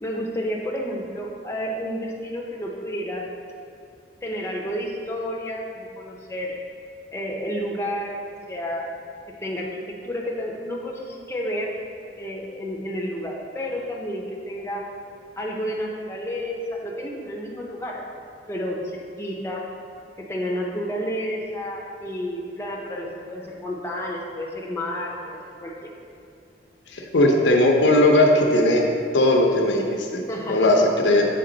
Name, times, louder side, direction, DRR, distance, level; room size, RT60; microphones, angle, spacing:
voice 1, 0.0-3.3 4.2-6.6 7.1-8.2 8.5-8.9 9.3-11.8 12.2-14.8 15.4-18.2 18.5-19.7 20.2-25.7 30.3-30.7, equal, 15° left, -2 dB, 0.5 m, -30 dB
voice 2, 26.9-28.8 29.1-30.2 30.5-31.3, left 1 dB, 90° left, 1 dB, 0.7 m, -18 dB
6.7 x 3.7 x 3.8 m, 2.5 s
head